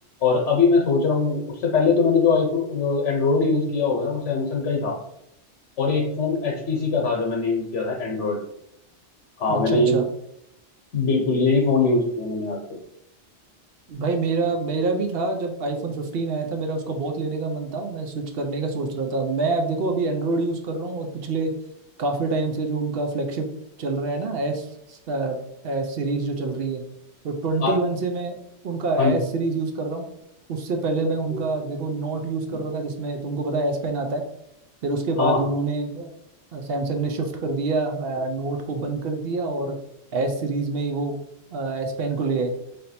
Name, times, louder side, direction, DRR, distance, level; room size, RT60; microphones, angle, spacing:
voice 1, 0.2-5.0 5.8-8.4 9.4-10.0 10.9-12.6 27.6-27.8 29.0-29.2 31.3-31.4 35.2-35.4, left 4 dB, 90° left, -1 dB, 1.1 m, -22 dB
voice 2, 9.5-10.1 13.9-21.5 22.0-23.5 23.8-25.4 25.6-26.8 27.2-28.3 28.6-30.1 30.5-34.2 34.8-36.1 36.5-39.8 40.1-41.2 41.5-42.5, right 3 dB, 60° right, 4 dB, 0.8 m, -26 dB
3.4 x 2.7 x 4.1 m, 0.78 s
omnidirectional pair, 1.2 m